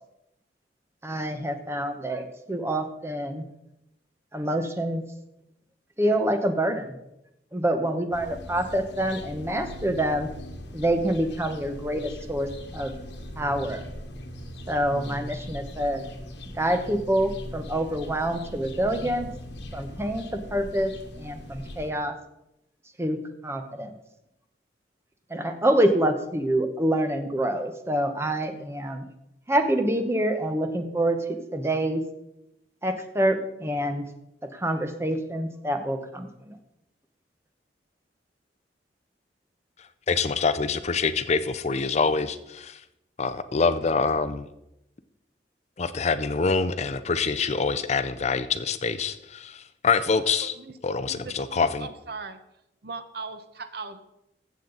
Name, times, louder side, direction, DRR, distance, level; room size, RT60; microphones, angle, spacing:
voice 1, 1.0-3.4 4.3-5.0 6.0-6.9 7.5-10.3 10.7-12.9 13.4-13.9 14.7-16.0 16.5-19.3 19.7-20.3 20.5-20.9 21.2-22.1 23.0-23.2 23.4-23.9 25.3-29.0 29.5-31.2 31.5-32.0 32.8-34.0 34.5-36.6, right 1 dB, 15° right, 7 dB, 1.0 m, -26 dB
sound 1, 8.1-21.9, left 1 dB, 80° left, 1.4 m, -40 dB
voice 2, 40.1-42.8 43.2-44.5 45.8-50.5 50.8-51.9, left 4 dB, 40° left, 12 dB, 0.5 m, -25 dB
voice 3, 50.4-50.7 51.1-52.4 52.8-54.0, right 4 dB, 65° right, 10 dB, 0.9 m, -39 dB
15.0 x 7.4 x 3.9 m, 0.85 s
head